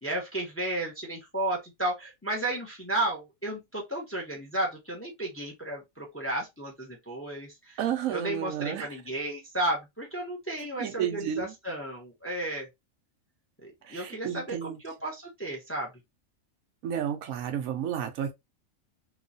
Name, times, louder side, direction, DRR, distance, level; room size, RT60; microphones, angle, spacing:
voice 1, 0.0-7.8 8.1-12.7 13.6-15.9, right 1 dB, 15° left, 0.6 m, -33 dB
voice 2, 7.8-8.9 10.8-11.5 13.8-14.8 16.8-18.3, right 9 dB, 80° right, 1.0 m, -31 dB
3.0 x 2.3 x 2.5 m
omnidirectional pair, 1.4 m